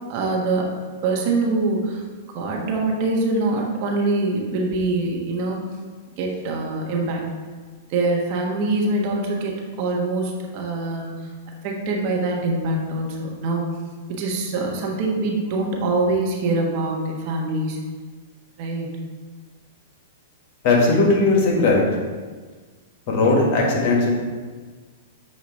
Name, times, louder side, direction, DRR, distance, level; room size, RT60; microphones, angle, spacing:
voice 1, 0.1-0.7 1.0-2.0 2.3-5.6 6.2-7.2 7.9-11.3 11.6-13.6 14.1-17.8 18.6-19.0, right 2 dB, 50° right, 0 dB, 1.3 m, -24 dB
voice 2, 20.6-21.9 23.1-24.1, left 3 dB, 50° left, -1 dB, 1.7 m, -18 dB
7.7 x 2.9 x 4.8 m, 1.4 s
hypercardioid pair, 110°, 0 cm